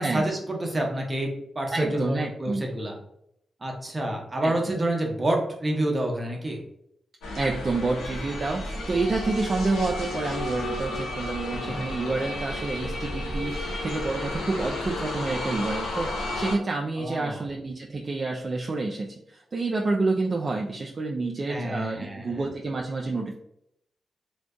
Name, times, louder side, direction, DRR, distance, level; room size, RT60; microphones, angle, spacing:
voice 1, 0.0-2.9 3.6-6.6 11.6-11.9 17.0-17.5 21.5-22.5, right 1 dB, 30° right, 1 dB, 0.7 m, -28 dB
voice 2, 1.7-2.6 4.4-4.8 7.4-23.3, right 3 dB, 50° right, 0 dB, 0.3 m, -29 dB
sound 1, 7.2-16.6, left 1 dB, 90° left, 0.5 m, -32 dB
2.5 x 2.2 x 2.2 m, 0.76 s
supercardioid pair, 40°, 0 cm